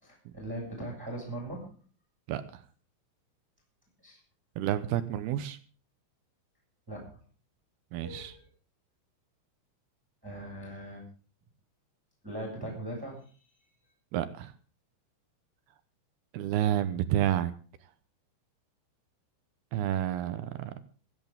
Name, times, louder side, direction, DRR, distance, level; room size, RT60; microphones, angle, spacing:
voice 1, 0.0-1.7 4.0-4.2 6.9-7.2 8.0-8.5 10.2-11.0 12.2-13.2, right 1 dB, 5° right, -1 dB, 6.7 m, -40 dB
voice 2, 2.3-2.6 4.6-5.6 7.9-8.3 14.1-14.5 16.3-17.5 19.7-20.8, right 12 dB, 75° right, 12 dB, 2.5 m, -30 dB
26.5 x 11.0 x 3.6 m, 0.39 s
omnidirectional pair, 5.5 m